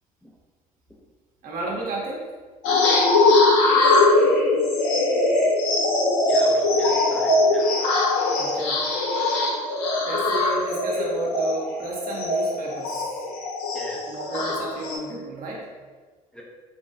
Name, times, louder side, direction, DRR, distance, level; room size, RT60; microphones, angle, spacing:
voice 1, 1.4-2.3 8.4-8.8 10.0-13.2 14.1-15.7, right 2 dB, 50° right, -2 dB, 0.8 m, -32 dB
sound 1, 2.6-15.0, left 2 dB, 70° left, 0.6 m, -21 dB
voice 2, 6.3-7.7 13.7-14.0 16.3-16.4, equal, 5° left, -3 dB, 0.5 m, -37 dB
2.9 x 2.2 x 2.6 m, 1.4 s
hypercardioid pair, 55°, 18 cm